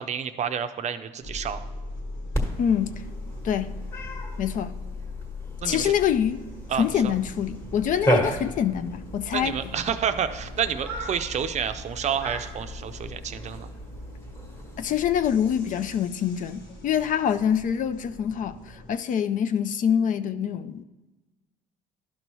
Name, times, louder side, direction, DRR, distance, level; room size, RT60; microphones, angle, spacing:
voice 1, 0.0-1.6 5.6-5.9 6.7-7.1 9.3-13.7, right 8 dB, 45° right, 0.5 m, -29 dB
sound 1, 1.2-18.9, left 2 dB, 90° left, 1.5 m, -41 dB
Cat, 2.3-16.0, equal, 15° left, 1.2 m, -34 dB
voice 2, 2.6-2.9 3.4-3.7 4.4-4.7 5.6-6.5 6.8-9.5 14.8-20.8, left 8 dB, 50° left, 0.4 m, -25 dB
12.0 x 5.4 x 3.0 m
cardioid pair, 110°, 17 cm